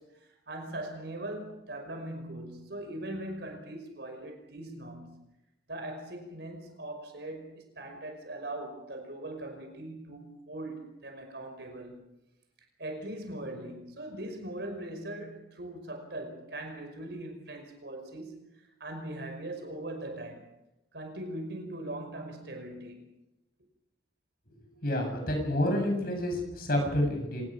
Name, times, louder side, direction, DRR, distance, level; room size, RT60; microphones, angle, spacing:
voice 1, 0.0-5.2 5.7-12.1 12.8-20.4 20.9-23.1, right 1 dB, 65° right, 5 dB, 5.5 m, -40 dB
voice 2, 24.8-27.4, left 1 dB, 55° left, 3 dB, 7.5 m, -29 dB
26.0 x 19.5 x 6.2 m, 0.92 s
head